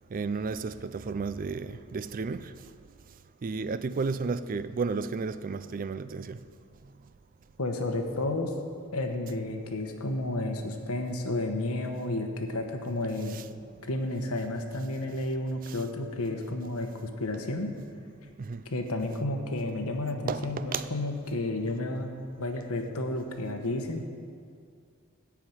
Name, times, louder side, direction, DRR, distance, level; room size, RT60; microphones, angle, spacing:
voice 1, 0.1-2.5 3.4-6.4 13.0-13.4 15.6-15.8 18.4-18.6 20.3-20.9, right 4 dB, 40° right, 0.4 m, -33 dB
voice 2, 7.6-8.5 8.9-13.4 13.8-17.7 18.6-22.1 22.4-24.0, left 2 dB, 85° left, 1.2 m, -31 dB
13.5 x 4.9 x 8.9 m
head